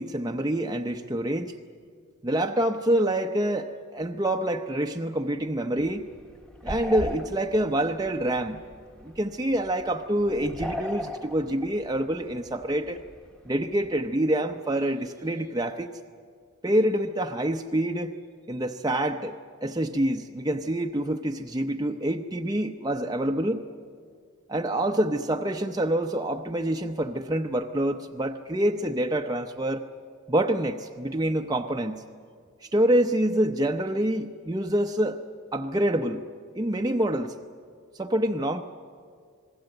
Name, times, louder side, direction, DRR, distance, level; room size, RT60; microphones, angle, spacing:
voice 1, 0.0-1.5 2.2-6.1 6.6-8.6 9.0-13.0 13.4-15.9 16.6-18.1 18.5-23.6 24.5-29.9 30.3-32.0 32.7-35.2 35.5-36.2 36.5-37.3 38.0-38.6, right 1 dB, 20° right, 3 dB, 0.7 m, -26 dB
sound 1, 5.7-14.1, equal, 5° left, 1.1 m, -39 dB
28.0 x 20.0 x 7.9 m, 2.1 s
head